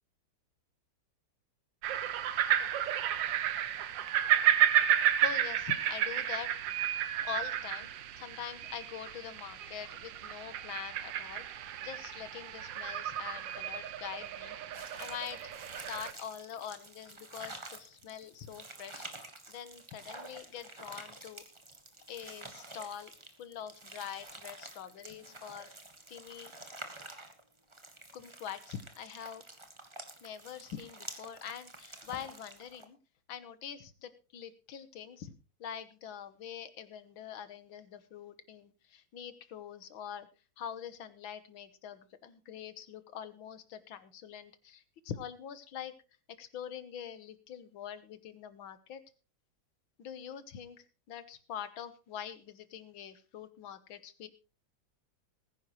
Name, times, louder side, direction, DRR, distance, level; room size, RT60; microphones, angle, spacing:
sound 1, 1.8-16.1, right 11 dB, 70° right, 1.5 m, -32 dB
voice 1, 5.2-6.5 7.2-14.6 15.0-15.5 15.9-21.4 22.1-23.1 23.4-25.7 26.1-26.5 28.1-29.4 30.2-33.0 33.3-35.3 35.6-40.3 40.6-45.9 46.4-49.0 50.0-54.3, left 9 dB, 85° left, 12 dB, 1.9 m, -44 dB
sound 2, 14.7-32.8, right 2 dB, 15° right, 1.4 m, -49 dB
20.0 x 10.5 x 3.1 m, 0.32 s
omnidirectional pair, 2.1 m